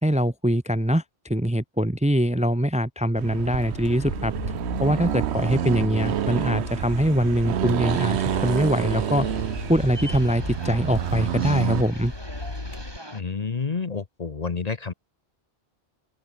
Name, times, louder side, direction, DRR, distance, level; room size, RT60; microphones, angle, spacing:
voice 1, 0.0-4.3 4.8-9.3 9.7-12.1, equal, 5° right, 0.8 m, -23 dB
Accelerating revving vroom, 3.2-11.9, right 10 dB, 90° right, 1.0 m, -28 dB
sound 1, 3.6-13.0, left 2 dB, 65° left, 3.4 m, -37 dB
sound 2, 7.8-13.2, right 1 dB, 25° right, 3.9 m, -41 dB
voice 2, 13.1-14.9, left 5 dB, 40° left, 1.0 m, -29 dB
open air
omnidirectional pair, 1.1 m